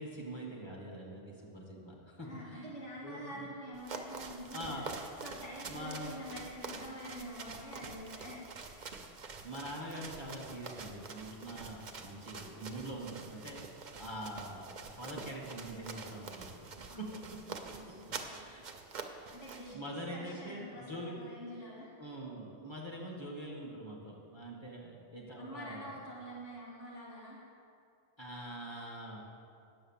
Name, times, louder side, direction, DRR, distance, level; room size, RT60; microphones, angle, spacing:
voice 1, 0.0-2.7 3.0-3.5 4.5-5.1 5.7-6.2 9.4-16.7 17.0-17.6 18.3-18.6 19.5-21.2 22.0-25.9 28.2-29.2, right 1 dB, 25° left, -2 dB, 1.7 m, -44 dB
voice 2, 2.2-8.4 8.7-9.0 16.9-18.4 19.0-21.9 25.4-27.4, equal, 90° left, -6 dB, 2.2 m, -47 dB
sound 1, 3.7-19.7, right 4 dB, 45° right, 0.8 m, -46 dB
9.3 x 7.1 x 7.3 m, 2.4 s
omnidirectional pair, 1.2 m